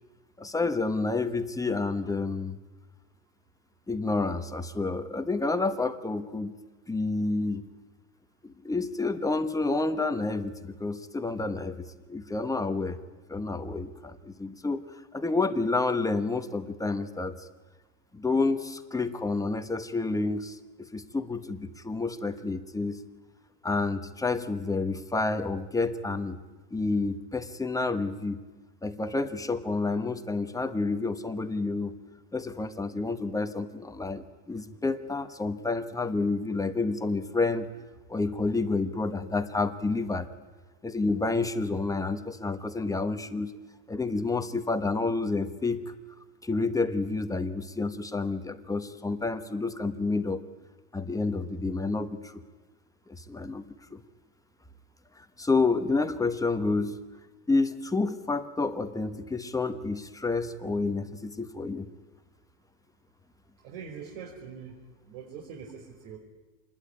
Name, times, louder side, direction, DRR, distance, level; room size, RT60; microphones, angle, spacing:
voice 1, 0.4-2.6 3.9-6.5 6.9-7.6 8.4-13.0 13.3-14.8 15.1-17.5 18.1-20.6 20.9-23.0 23.6-26.4 26.7-28.4 28.8-31.9 32.3-37.7 38.1-40.3 40.8-43.5 43.9-45.9 46.4-50.4 50.9-52.3 53.1-53.6 53.9-54.0 55.2-56.9 57.5-61.9, left 3 dB, 5° left, 8 dB, 1.2 m, -29 dB
voice 2, 63.6-64.7 65.1-66.2, right 6 dB, 60° right, 0 dB, 5.4 m, -43 dB
27.0 x 21.0 x 9.9 m, 1.2 s
supercardioid pair, 140°, 48 cm